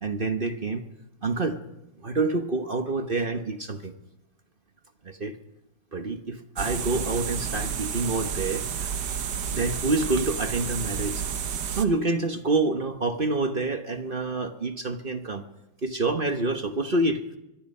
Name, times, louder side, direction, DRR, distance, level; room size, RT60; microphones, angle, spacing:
voice 1, 0.0-0.9 1.2-1.6 2.0-3.9 5.0-5.4 5.9-8.9 9.5-11.2 11.8-15.4 15.8-17.2, right 2 dB, 35° right, 7 dB, 0.8 m, -27 dB
sound 1, 6.6-11.8, right 7 dB, 55° right, 1.6 m, -31 dB
24.0 x 22.0 x 5.5 m, 0.94 s
omnidirectional pair, 2.4 m